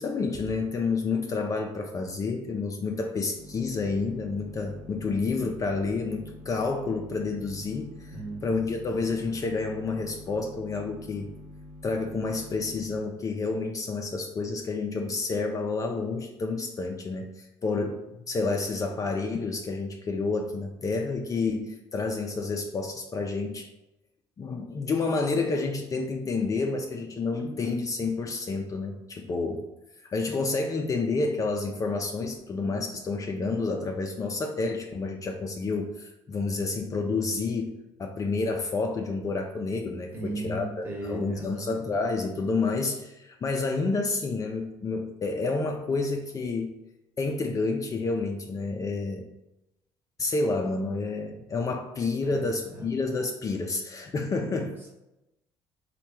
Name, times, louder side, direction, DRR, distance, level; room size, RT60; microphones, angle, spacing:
voice 1, 0.0-8.1 8.4-11.3 11.8-23.7 24.4-29.7 30.0-46.7 47.2-49.3 50.2-54.8, left 3 dB, 35° left, 3 dB, 0.4 m, -29 dB
sound 1, 3.4-13.0, left 1 dB, 80° right, 0.7 m, -46 dB
voice 2, 8.1-8.6 27.4-27.5 40.1-41.7 52.2-52.9, right 1 dB, 20° right, -1 dB, 1.2 m, -36 dB
3.2 x 2.2 x 4.2 m, 0.93 s
supercardioid pair, 70°, 10 cm